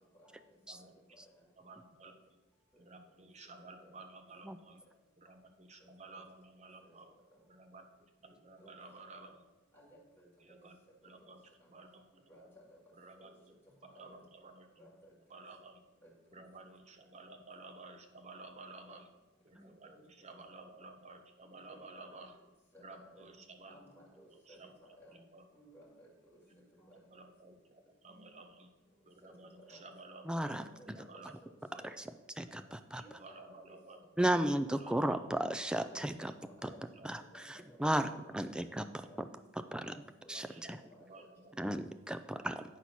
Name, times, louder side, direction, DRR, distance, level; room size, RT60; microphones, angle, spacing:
voice 1, 0.7-1.0 1.6-2.2 2.8-4.8 5.2-7.1 7.5-9.4 10.4-10.8 11.0-12.1 12.4-12.5 12.9-13.5 13.8-14.7 15.3-15.8 16.3-19.1 19.4-22.4 22.8-23.8 24.3-24.7 25.1-25.5 26.5-28.7 29.1-30.6 30.9-31.3 31.7-31.9 32.4-32.8 33.1-34.3 34.8-35.2 36.7-37.2 37.9-38.2 39.2-39.8 40.3-41.6 42.3-42.6, right 3 dB, 35° right, 5 dB, 0.9 m, -54 dB
voice 2, 8.2-8.7 9.2-9.4 9.7-10.3 10.6-10.7 11.0-11.1 11.6-11.7 12.3-12.6 13.2-13.3 13.9-14.2 14.8-15.1 16.0-16.4 18.9-19.0 19.7-20.0 21.5-22.1 22.7-23.3 23.7-25.2 25.5-26.9 28.1-28.3 29.4-29.8 30.5-31.5 31.8-31.9 33.0-33.8 34.3-34.8 35.6-36.8 37.1-38.2 38.8-39.2 39.7-41.3, equal, 10° left, -7 dB, 2.4 m, -59 dB
voice 3, 30.3-30.6 31.8-32.0 32.4-33.0 34.2-36.3 36.6-36.7 37.0-38.9 39.7-40.0 40.3-40.8 41.6-42.6, right 1 dB, 5° right, 9 dB, 0.3 m, -34 dB
9.5 x 4.2 x 6.0 m, 1.0 s
head